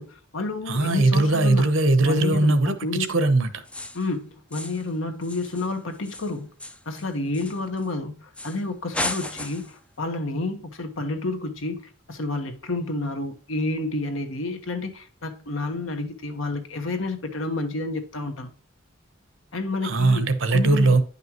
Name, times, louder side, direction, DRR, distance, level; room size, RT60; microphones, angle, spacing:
voice 1, 0.0-1.7 2.0-3.1 3.9-6.5 6.8-18.5 19.5-21.0, left 2 dB, 80° left, 1.3 m, -30 dB
voice 2, 0.7-3.6 19.8-21.0, right 2 dB, 70° right, 0.9 m, -20 dB
sound 1, 3.7-4.1 4.5-4.9 5.2-7.9 8.4-8.6 8.9-9.8, left 2 dB, 5° left, 0.4 m, -35 dB
9.9 x 5.5 x 3.0 m
head